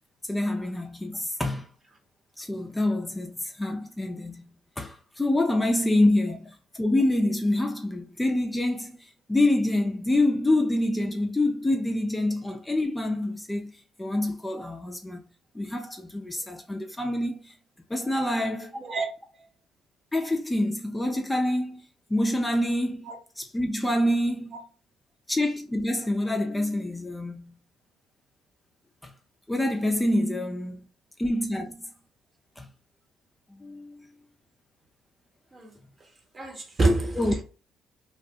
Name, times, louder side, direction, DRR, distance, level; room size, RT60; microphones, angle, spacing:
voice 1, 0.3-1.7 2.4-4.5 4.8-13.7 14.0-15.2 15.5-17.6 17.9-18.7 20.1-21.8 22.1-23.1 23.4-24.6 25.3-27.6 29.0-29.1 29.5-30.9 31.2-31.9 32.6-32.7 33.5-34.1 37.2-37.3, left 1 dB, 15° left, 0.5 m, -26 dB
voice 2, 18.7-19.1 19.3-19.5 23.1-23.2 24.5-24.6 35.5-35.7 36.3-37.4, right 2 dB, 35° right, 0.9 m, -27 dB
2.4 x 2.1 x 2.6 m
hypercardioid pair, 55°, 0 cm